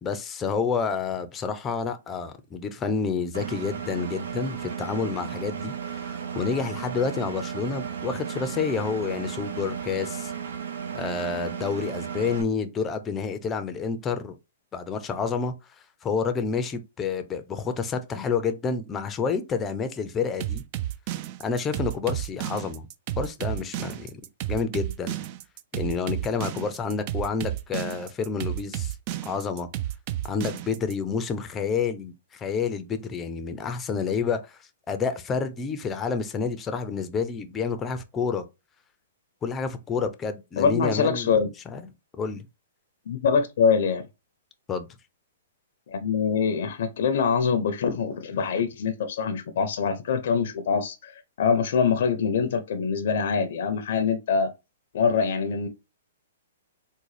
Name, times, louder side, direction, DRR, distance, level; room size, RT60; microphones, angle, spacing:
voice 1, 0.0-10.3 10.9-14.4 14.7-15.5 16.0-20.6 21.4-22.9 23.2-24.1 24.5-25.1 25.7-28.9 29.2-29.7 30.2-34.6 34.9-38.5 39.4-41.3 41.7-41.9 42.2-42.5 44.7-44.9, left 5 dB, 20° left, 0.5 m, -29 dB
Engine, 3.3-12.4, right 7 dB, 75° right, 0.7 m, -34 dB
sound 1, 20.4-30.9, right 13 dB, 40° right, 0.4 m, -31 dB
voice 2, 40.6-41.5 43.1-44.0 45.9-54.5 54.9-55.7, left 6 dB, 65° left, 0.5 m, -24 dB
3.7 x 2.2 x 3.2 m
hypercardioid pair, 140°, 0 cm